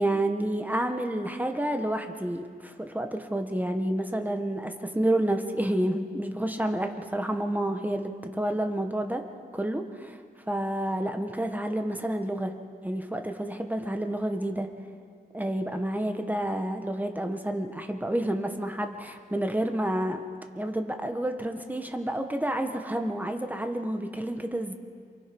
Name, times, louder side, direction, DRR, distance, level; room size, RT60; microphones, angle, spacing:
voice 1, 0.0-9.2 9.5-10.2 10.5-12.5 12.8-14.7 15.3-20.2 20.6-24.7, right 1 dB, 10° right, 5 dB, 1.6 m, -29 dB
27.5 x 23.5 x 5.5 m, 2.3 s
wide cardioid pair, 90°, 18 cm